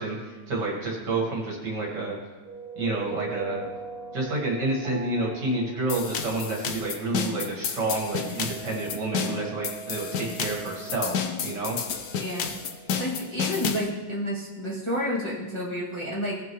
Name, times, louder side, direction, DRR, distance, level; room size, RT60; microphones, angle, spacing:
voice 1, 0.0-2.2 2.7-3.7 4.1-11.1 11.4-11.8, right 2 dB, 60° right, -2 dB, 2.4 m, -29 dB
sound 1, 2.4-13.8, right 4 dB, 90° right, 1.8 m, -43 dB
sound 2, 5.9-13.9, left 6 dB, 65° left, 1.3 m, -31 dB
voice 2, 12.2-12.5 13.0-16.4, equal, 15° left, -8 dB, 2.0 m, -30 dB
17.0 x 6.0 x 3.1 m, 1.3 s
omnidirectional pair, 2.1 m